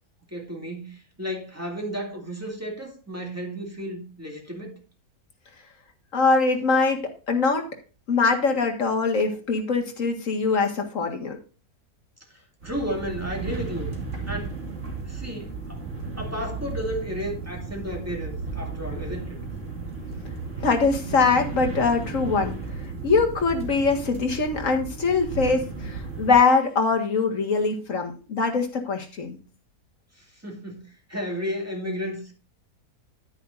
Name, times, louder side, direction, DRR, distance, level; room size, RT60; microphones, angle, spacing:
voice 1, 0.3-4.8 12.3-13.9 14.3-14.6 15.1-15.8 16.1-19.4 30.2-32.3, equal, 10° right, 2.2 m, -33 dB
voice 2, 6.1-7.6 8.1-11.4 20.6-22.6 23.0-29.4, left 4 dB, 55° left, 2.1 m, -23 dB
sound 1, 12.6-26.4, right 4 dB, 50° right, 2.5 m, -34 dB
9.9 x 9.8 x 2.6 m
omnidirectional pair, 1.6 m